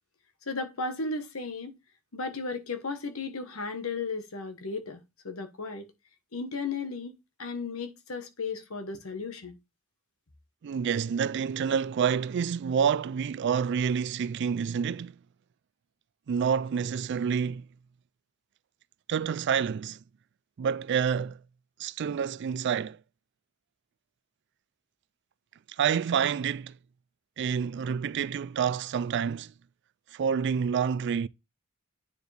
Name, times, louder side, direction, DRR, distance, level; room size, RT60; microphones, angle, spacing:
voice 1, 0.5-1.8 2.1-5.9 6.3-9.6, left 4 dB, 75° left, 1.2 m, -35 dB
voice 2, 10.6-15.2 16.3-17.7 19.1-20.0 20.6-21.4 21.8-23.0 25.8-26.8 27.4-29.5 30.1-31.3, right 7 dB, 55° right, 0.3 m, -28 dB
9.5 x 4.6 x 3.3 m
head